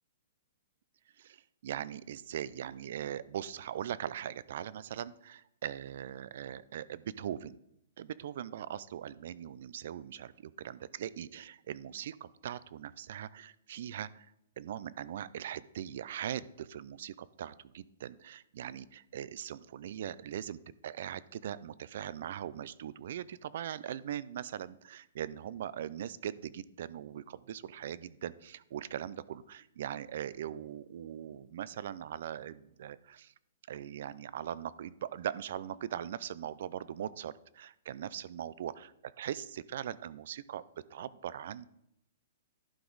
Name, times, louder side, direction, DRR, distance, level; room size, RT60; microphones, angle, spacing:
voice 1, 1.2-7.6 8.0-14.3 14.6-33.3 33.7-40.6 40.9-41.6, right 10 dB, 60° right, 19 dB, 0.4 m, -40 dB
11.5 x 5.0 x 3.9 m, 0.79 s
hypercardioid pair, 150°, 0 cm